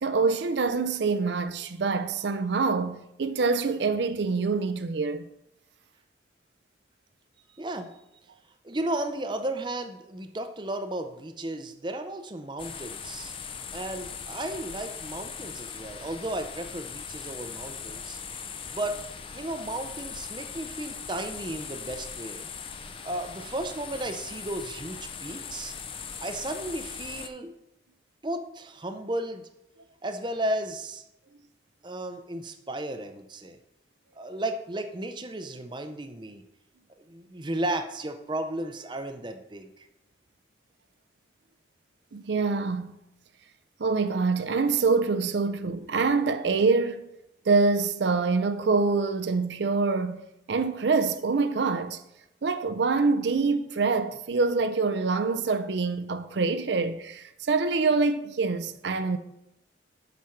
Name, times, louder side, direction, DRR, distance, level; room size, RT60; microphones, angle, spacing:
voice 1, 0.0-5.3 42.1-43.0 43.8-47.1 47.4-52.0 52.4-59.2, right 4 dB, 70° right, 0.5 m, -25 dB
voice 2, 7.5-8.0 8.6-13.3 13.7-18.2 18.7-19.0 19.3-22.4 23.0-25.8 26.2-27.5 28.2-29.5 30.0-31.0 31.8-33.6 34.2-36.4 37.0-39.9, right 1 dB, 25° right, 0.6 m, -34 dB
sound 1, 12.6-27.3, left 6 dB, 30° left, 0.5 m, -40 dB
7.5 x 5.1 x 5.8 m
head